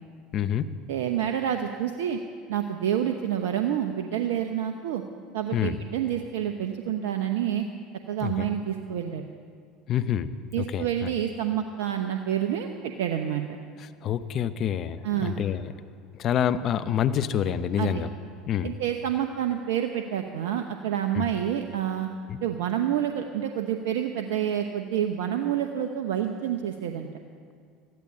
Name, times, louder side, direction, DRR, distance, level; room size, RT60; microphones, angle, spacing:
voice 1, 0.3-0.7 5.5-5.8 8.2-8.5 9.9-10.3 10.6-11.1 14.0-15.6 16.2-18.1 18.5-18.7 21.1-21.3 22.3-22.4, left 9 dB, 50° left, 12 dB, 0.7 m, -27 dB
voice 2, 0.9-2.2 2.5-5.0 5.3-7.6 8.1-9.2 10.5-13.4 15.0-15.3 17.8-18.0 18.6-22.1 22.4-27.1, right 10 dB, 75° right, 5 dB, 0.8 m, -28 dB
14.0 x 10.5 x 8.4 m, 2.2 s
hypercardioid pair, 75°, 0 cm